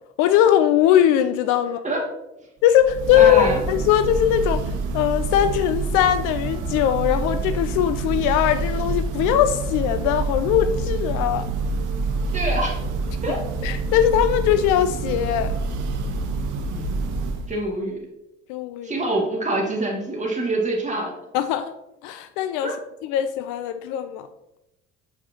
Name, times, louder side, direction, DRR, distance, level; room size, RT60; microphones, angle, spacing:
voice 1, 0.2-1.8 2.6-4.7 4.9-11.5 13.3-13.4 13.6-15.5 18.5-18.9 21.3-21.8 22.0-22.8 23.0-24.3, left 10 dB, 55° left, 11 dB, 0.4 m, -20 dB
Church bell, 2.7-17.6, right 3 dB, 55° right, 1.0 m, -27 dB
voice 2, 3.1-3.6 12.3-12.8 13.2-13.4 16.7-16.9 17.5-18.0 18.8-21.1 22.6-22.7, right 2 dB, 20° right, -1 dB, 2.0 m, -25 dB
7.7 x 5.0 x 2.8 m, 0.94 s
hypercardioid pair, 60°, 36 cm